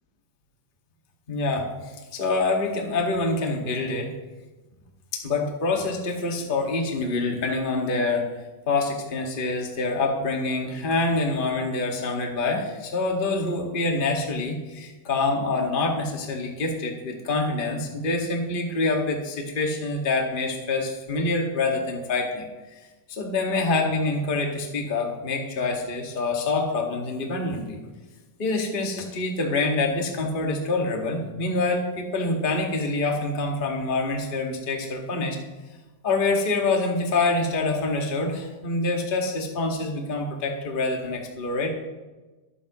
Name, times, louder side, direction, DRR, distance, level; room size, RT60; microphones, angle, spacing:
voice 1, 1.3-4.1 5.1-8.3 8.7-22.8 23.1-27.8 28.4-35.4 36.0-41.7, left 3 dB, 30° left, 0 dB, 1.0 m, -26 dB
23.0 x 8.7 x 3.1 m, 1.2 s
omnidirectional pair, 4.1 m